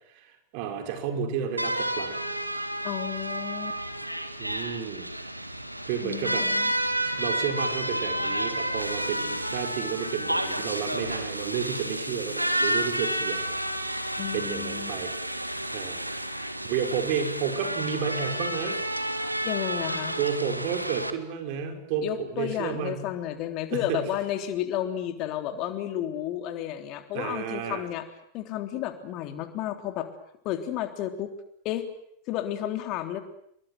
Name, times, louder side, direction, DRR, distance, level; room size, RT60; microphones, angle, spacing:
voice 1, 0.1-2.2 4.4-5.1 5.9-6.5 7.2-13.5 14.3-18.8 20.2-23.0 23.7-24.0 27.1-27.8, right 7 dB, 45° right, 5 dB, 5.4 m, -32 dB
sound 1, 1.6-21.1, right 1 dB, 90° right, 1.9 m, -30 dB
voice 2, 2.8-3.8 6.0-6.7 14.2-14.9 19.4-20.2 22.0-28.0 28.3-30.1 30.4-31.3 31.6-31.9 32.3-33.2, left 11 dB, 40° left, 6 dB, 3.5 m, -32 dB
29.0 x 23.5 x 7.9 m, 0.72 s
figure-of-eight pair, 90°, 0 cm